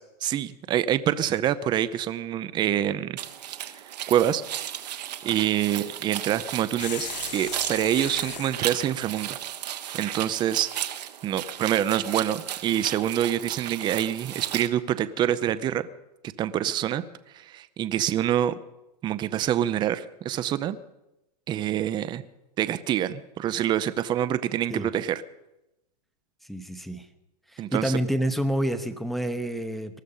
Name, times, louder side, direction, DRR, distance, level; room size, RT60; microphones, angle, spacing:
voice 1, 0.0-3.2 3.5-4.4 5.2-9.4 9.9-15.9 16.4-17.0 17.3-18.6 19.0-20.8 21.5-22.2 22.6-25.2 27.6-27.9, right 11 dB, 20° right, 13 dB, 0.6 m, -26 dB
sound 1, 3.2-14.7, right 11 dB, 80° right, 1.3 m, -35 dB
sound 2, 6.8-8.6, left 9 dB, 85° left, 1.0 m, -37 dB
voice 2, 26.5-27.1 27.5-30.0, right 1 dB, ahead, 7 dB, 0.9 m, -28 dB
19.5 x 13.0 x 5.5 m, 0.92 s
hypercardioid pair, 135°, 21 cm